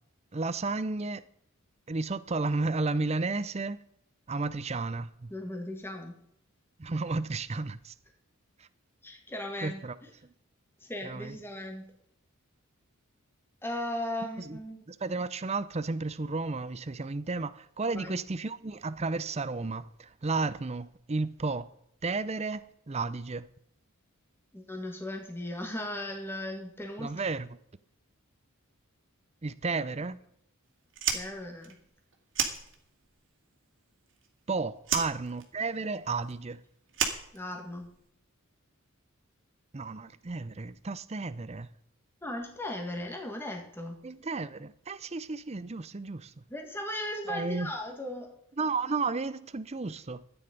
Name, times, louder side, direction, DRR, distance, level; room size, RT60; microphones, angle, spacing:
voice 1, 0.3-1.2 1.9-3.8 4.3-5.3 6.8-7.9 8.6-8.7 9.6-9.9 11.0-11.3 14.5-14.6 14.9-21.7 22.0-23.5 27.0-27.5 29.4-30.2 34.5-36.6 39.7-41.7 44.0-46.3 47.3-47.7 48.6-50.2, right 3 dB, 30° right, 0.5 m, -33 dB
voice 2, 5.3-6.1 9.0-9.8 10.8-11.9 13.6-14.8 17.9-18.2 24.5-27.1 31.1-31.8 37.3-37.9 42.2-44.0 46.5-48.3, left 1 dB, 10° left, 1.8 m, -37 dB
Fire, 30.9-33.2 33.5-34.5 34.8-38.0, right 7 dB, 55° right, 2.1 m, -33 dB
13.5 x 9.3 x 5.3 m
head